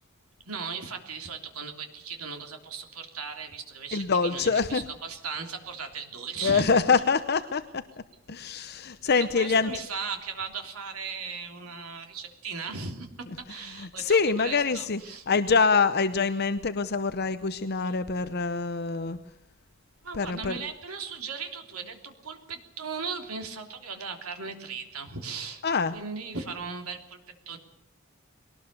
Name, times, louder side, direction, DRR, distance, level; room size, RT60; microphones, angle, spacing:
voice 1, 0.4-6.8 9.3-15.2 17.8-18.0 20.0-25.6 25.9-27.6, right 5 dB, 90° right, 4 dB, 3.3 m, -37 dB
voice 2, 3.9-4.8 6.4-7.8 8.3-9.7 13.7-15.0 15.3-19.2 20.1-20.6 25.6-26.0, left 4 dB, 50° left, 11 dB, 0.8 m, -25 dB
22.0 x 19.0 x 6.8 m, 0.88 s
head